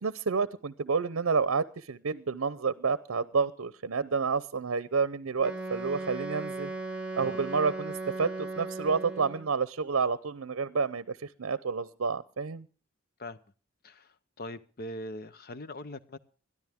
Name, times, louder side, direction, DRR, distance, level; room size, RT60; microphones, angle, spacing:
voice 1, 0.0-6.7 7.2-12.7, right 5 dB, 70° right, 16 dB, 0.6 m, -29 dB
Wind instrument woodwind instrument, 5.4-9.6, right 2 dB, 5° right, 1.8 m, -37 dB
voice 2, 13.8-16.2, left 1 dB, 45° left, 13 dB, 0.8 m, -41 dB
21.5 x 13.5 x 3.6 m, 0.38 s
head